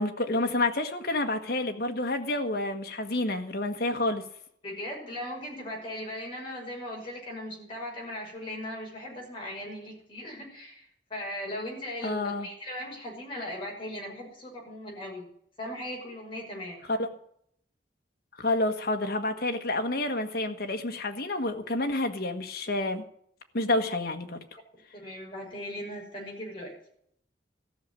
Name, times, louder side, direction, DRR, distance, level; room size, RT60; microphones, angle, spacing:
voice 1, 0.0-4.2 12.0-12.5 16.9-17.1 18.4-23.0 23.5-24.4, left 2 dB, 55° left, 5 dB, 1.5 m, -29 dB
voice 2, 4.6-15.3 15.6-16.8 25.0-26.8, left 1 dB, 30° left, -2 dB, 6.1 m, -38 dB
14.0 x 6.7 x 9.7 m, 0.66 s
head